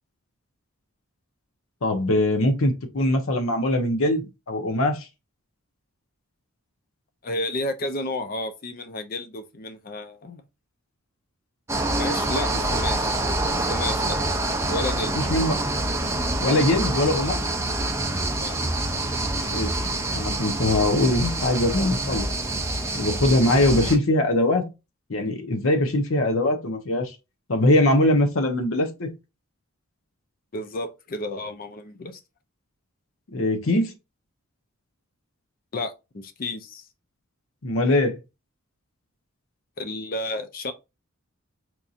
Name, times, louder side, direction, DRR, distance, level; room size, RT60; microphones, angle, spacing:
voice 1, 1.8-5.1 15.1-15.6 16.4-17.4 19.5-19.7 20.1-22.3 22.9-24.7 25.1-27.1 27.5-29.1 33.3-33.9 37.6-38.2, left 1 dB, 70° left, 0.8 m, -22 dB
voice 2, 7.2-10.4 12.0-13.2 13.5-14.2 14.7-15.2 18.4-18.6 30.5-32.2 35.7-36.8 39.8-40.7, left 2 dB, 40° left, 0.5 m, -31 dB
sound 1, 11.7-24.0, right 2 dB, 15° right, 0.5 m, -26 dB
4.5 x 2.7 x 2.4 m
head